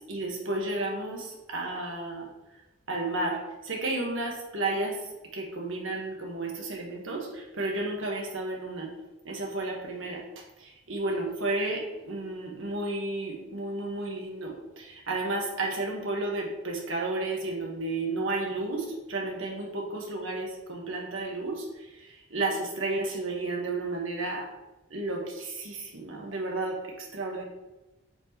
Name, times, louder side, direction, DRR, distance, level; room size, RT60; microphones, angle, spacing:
voice 1, 0.1-2.3 2.9-5.0 5.3-8.9 9.2-10.2 10.6-21.7 22.3-24.5 24.9-27.4, right 2 dB, 70° right, 0 dB, 1.4 m, -32 dB
8.1 x 4.5 x 3.0 m, 1.0 s
head